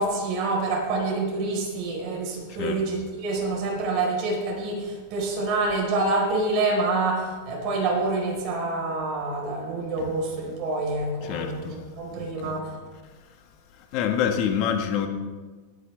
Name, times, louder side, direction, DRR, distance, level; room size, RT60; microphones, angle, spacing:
voice 1, 0.0-12.7, right 2 dB, 40° right, -1 dB, 4.4 m, -27 dB
voice 2, 11.2-11.7 12.1-12.5 13.9-15.1, left 8 dB, 45° left, 4 dB, 1.5 m, -26 dB
20.0 x 9.4 x 3.4 m, 1.3 s
supercardioid pair, 155°, 0 cm